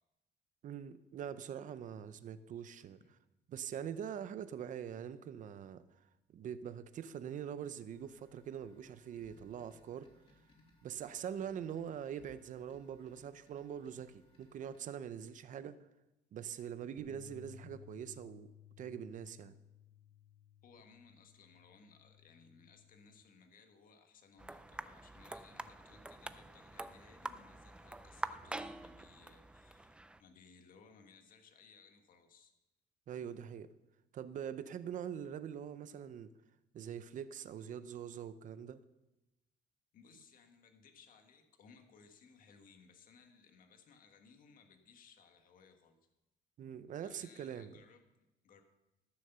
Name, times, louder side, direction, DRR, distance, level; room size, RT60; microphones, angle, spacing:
voice 1, 0.6-3.0 3.5-5.8 6.3-10.1 10.8-15.8 16.3-18.5 18.8-19.5 33.1-33.7 34.1-36.3 36.7-38.8 46.6-47.8, right 8 dB, 45° right, 0.7 m, -43 dB
sound 1, 7.9-14.8, left 1 dB, 30° left, 2.4 m, -68 dB
sound 2, 17.0-23.2, left 8 dB, 60° right, 1.4 m, -59 dB
voice 2, 20.6-32.5 39.9-46.0 47.0-48.6, left 5 dB, 50° left, 1.5 m, -62 dB
sound 3, 24.4-30.2, right 2 dB, 5° right, 0.3 m, -46 dB
14.0 x 6.6 x 6.8 m
cardioid pair, 160°, 19 cm